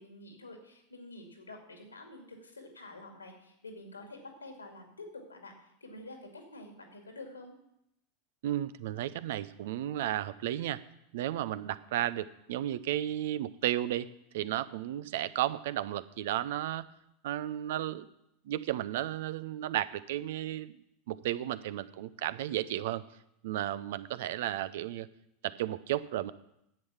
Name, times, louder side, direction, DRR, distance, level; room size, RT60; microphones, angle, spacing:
voice 1, 0.0-7.5, left 2 dB, 85° left, 3 dB, 2.3 m, -48 dB
voice 2, 8.4-10.8 11.1-14.1 14.3-16.9 17.2-18.1 18.5-20.8 21.1-23.0 23.4-25.1 25.4-26.3, right 13 dB, 60° right, 16 dB, 0.5 m, -33 dB
10.5 x 8.0 x 7.1 m, 0.79 s
figure-of-eight pair, 85°, 0 cm